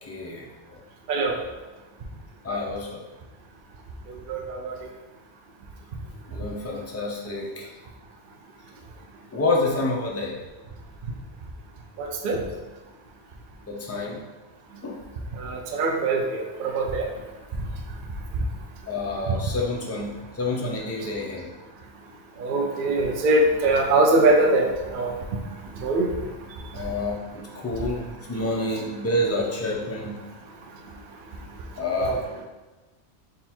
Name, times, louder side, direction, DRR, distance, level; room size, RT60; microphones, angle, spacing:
voice 1, 0.1-0.8 2.4-3.0 6.3-7.7 9.3-10.4 13.7-14.2 14.8-15.0 18.9-21.5 23.6-23.7 26.7-30.2 31.8-32.2, left 2 dB, 20° left, -3 dB, 0.4 m, -28 dB
voice 2, 4.1-4.8 12.0-12.4 15.4-17.1 19.3-19.4 22.4-25.1 25.8-26.1 32.0-32.2, right 2 dB, 55° right, 2 dB, 0.6 m, -22 dB
3.8 x 2.5 x 4.3 m, 1.2 s
omnidirectional pair, 1.2 m